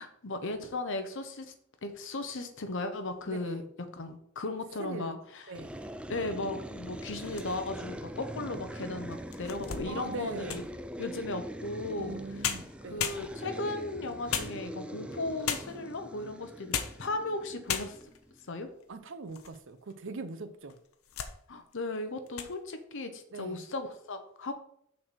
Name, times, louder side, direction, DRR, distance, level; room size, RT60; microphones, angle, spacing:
voice 1, 0.0-1.5 1.8-3.6 3.9-5.4 6.1-10.6 11.0-12.2 12.9-18.0 18.5-18.7 21.5-24.5, left 2 dB, 65° left, 8 dB, 0.9 m, -36 dB
voice 2, 3.3-3.6 4.8-5.1 5.5-5.7 9.9-10.6 12.0-13.1 18.9-20.8 23.3-23.6, right 3 dB, 65° right, 10 dB, 0.7 m, -41 dB
sound 1, 5.5-18.5, right 1 dB, 5° right, 0.4 m, -43 dB
sound 2, 7.1-7.9 8.5-8.6 9.1-10.8 12.1-12.2 12.4-13.6 14.3-15.0 15.4-15.9 16.5-17.1 17.3-17.4 17.7-18.2 18.8-19.6 19.9-20.0 20.7-21.4 21.7-22.0 22.3-22.5, left 8 dB, 85° left, 0.8 m, -36 dB
6.4 x 4.2 x 6.3 m, 0.68 s
head